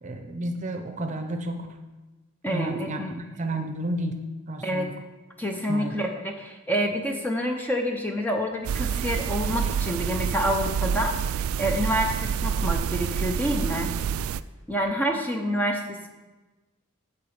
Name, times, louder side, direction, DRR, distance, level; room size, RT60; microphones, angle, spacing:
voice 1, 0.0-1.7 2.5-4.2 4.5-4.9 5.7-6.0, right 1 dB, 35° right, 6 dB, 0.7 m, -31 dB
voice 2, 2.4-3.2 4.6-4.9 5.4-11.2 11.6-13.9 14.7-16.1, equal, 10° left, 2 dB, 0.6 m, -27 dB
sound 1, 8.6-14.4, right 7 dB, 85° right, 0.3 m, -28 dB
8.3 x 4.8 x 6.8 m, 1.2 s
head